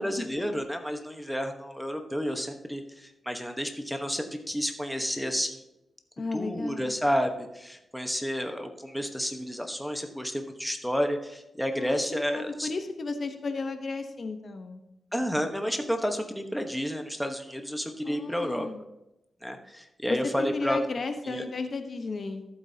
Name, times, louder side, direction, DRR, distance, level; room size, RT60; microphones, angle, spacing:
voice 1, 0.0-5.6 6.3-12.7 15.1-18.7 19.4-20.8 21.3-21.4, equal, ahead, 4 dB, 1.1 m, -31 dB
voice 2, 6.2-6.9 11.7-12.0 12.3-14.8 18.0-18.8 20.1-22.5, left 3 dB, 55° left, 7 dB, 1.0 m, -34 dB
14.0 x 8.2 x 2.8 m, 0.91 s
cardioid pair, 85°, 0 cm